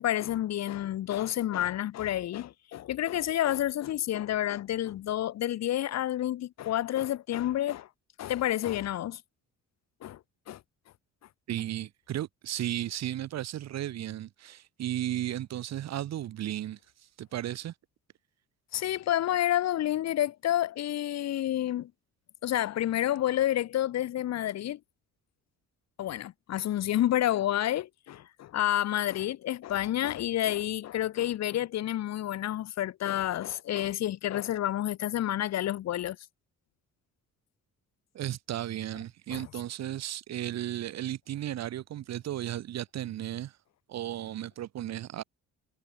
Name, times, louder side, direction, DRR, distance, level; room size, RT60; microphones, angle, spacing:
voice 1, 0.0-7.9 8.2-9.2 10.0-10.2 10.5-10.6 18.7-21.9 22.4-24.8 26.0-36.2 39.3-39.4, left 12 dB, 60° left, 3.6 m, -29 dB
voice 2, 11.5-16.8 17.2-17.7 38.1-43.5 43.9-45.2, right 12 dB, 60° right, 5.7 m, -34 dB
cardioid pair, 170°, 30 cm